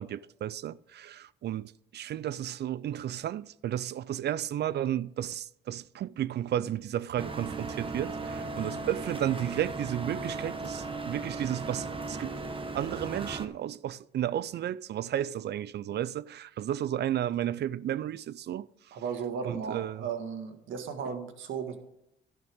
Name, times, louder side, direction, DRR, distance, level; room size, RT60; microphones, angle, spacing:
voice 1, 0.0-12.4 12.7-18.7 19.4-20.1 21.0-21.1, right 11 dB, 60° right, 0.4 m, -33 dB
sound 1, 7.2-13.5, right 3 dB, 25° right, 1.2 m, -37 dB
voice 2, 18.9-21.8, right 6 dB, 80° right, 1.8 m, -35 dB
12.0 x 11.0 x 3.6 m
cardioid pair, 90°, 20 cm